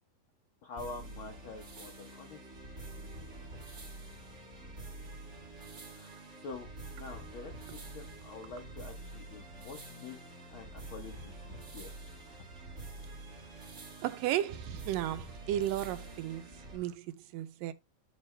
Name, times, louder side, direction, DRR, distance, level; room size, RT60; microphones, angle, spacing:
voice 1, 0.6-2.5 6.0-6.7 6.9-10.2 10.5-11.9, left 4 dB, 75° left, 1.2 m, -47 dB
sound 1, 0.8-16.8, right 2 dB, 30° right, 1.5 m, -47 dB
voice 2, 14.0-17.7, right 12 dB, 90° right, 2.5 m, -34 dB
6.8 x 6.6 x 3.2 m
omnidirectional pair, 3.8 m